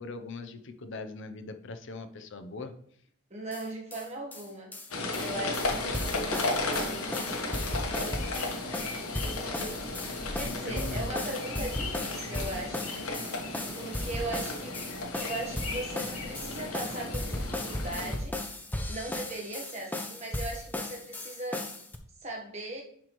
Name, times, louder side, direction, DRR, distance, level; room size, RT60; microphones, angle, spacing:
voice 1, 0.0-2.7 10.4-11.1, left 3 dB, 55° left, 7 dB, 0.6 m, -40 dB
voice 2, 3.3-4.7 5.2-7.1 9.3-9.6 10.3-13.0 13.7-14.8 15.2-18.4 18.9-21.7 22.2-22.8, right 1 dB, 30° right, -1 dB, 1.2 m, -39 dB
sound 1, 3.5-3.6 3.9-4.1 4.3-4.5 4.7-22.0, left 1 dB, 10° left, 0.5 m, -36 dB
sound 2, 4.9-18.2, left 2 dB, 75° left, 1.2 m, -34 dB
10.0 x 4.7 x 3.0 m, 0.65 s
head